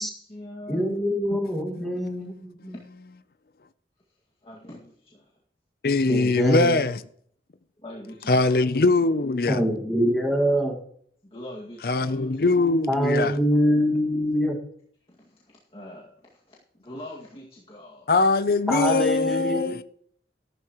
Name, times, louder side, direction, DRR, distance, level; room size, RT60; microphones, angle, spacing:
voice 1, 0.0-1.4 4.4-5.3 7.8-8.6 11.2-12.3 15.1-18.1, left 1 dB, 30° left, 2.1 m, -43 dB
voice 2, 0.7-2.7 6.1-6.8 9.5-10.8 12.9-14.6 18.7-19.8, equal, ahead, 1.9 m, -24 dB
voice 3, 1.8-2.3 2.6-2.7 5.8-7.0 8.3-9.6 11.8-13.3 18.1-19.8, left 3 dB, 55° left, 0.5 m, -22 dB
14.0 x 12.0 x 3.0 m
head